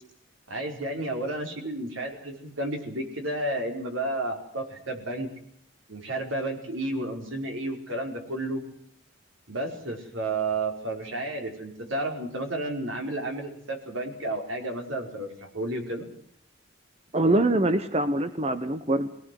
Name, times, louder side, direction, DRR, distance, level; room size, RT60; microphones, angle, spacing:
voice 1, 0.5-5.3 5.9-8.6 9.5-16.1, right 2 dB, 80° right, 2 dB, 5.1 m, -32 dB
voice 2, 17.1-19.1, right 1 dB, 30° right, 10 dB, 1.0 m, -24 dB
23.0 x 19.0 x 7.9 m, 0.68 s
head